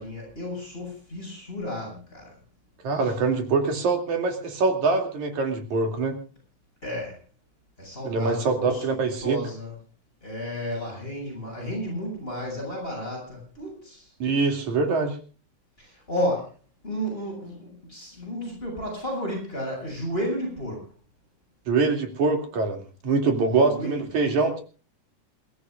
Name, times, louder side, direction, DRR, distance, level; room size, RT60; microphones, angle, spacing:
voice 1, 0.0-2.3 3.0-3.1 6.8-7.1 7.8-8.8 9.2-9.7 10.2-14.1 15.8-16.5 16.8-20.8 23.7-24.2, equal, 15° left, -1 dB, 8.0 m, -32 dB
voice 2, 2.8-6.2 8.0-9.4 14.2-15.2 21.7-24.6, right 4 dB, 70° right, 4 dB, 3.9 m, -24 dB
28.0 x 14.5 x 2.4 m, 0.37 s
omnidirectional pair, 3.6 m